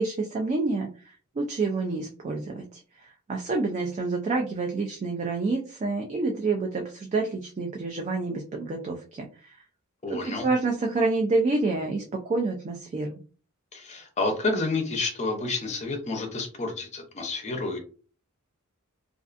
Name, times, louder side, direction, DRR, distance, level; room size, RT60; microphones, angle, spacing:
voice 1, 0.0-9.5 10.1-13.1, right 3 dB, 30° right, 2 dB, 0.3 m, -28 dB
voice 2, 10.0-10.5 13.7-17.8, left 3 dB, 30° left, 4 dB, 0.6 m, -29 dB
2.4 x 2.3 x 2.4 m, 0.39 s
head